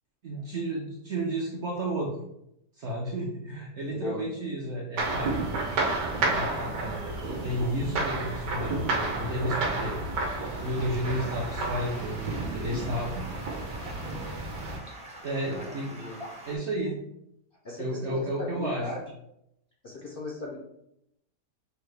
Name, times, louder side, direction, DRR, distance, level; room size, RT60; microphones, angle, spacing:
voice 1, 0.2-2.1 2.8-5.6 6.1-10.0 10.2-13.3 15.2-15.9 16.5-17.0 17.8-18.9, right 1 dB, 65° right, -2 dB, 0.7 m, -32 dB
voice 2, 3.8-4.2 15.4-16.2 17.6-18.2 18.5-19.0 19.8-20.6, left 2 dB, 85° left, -2 dB, 0.4 m, -38 dB
sound 1, 5.0-14.8, right 2 dB, 85° right, 1.5 m, -31 dB
Stream, 10.5-16.6, right 1 dB, 10° right, 0.3 m, -45 dB
5.6 x 2.1 x 3.2 m, 0.80 s
omnidirectional pair, 1.8 m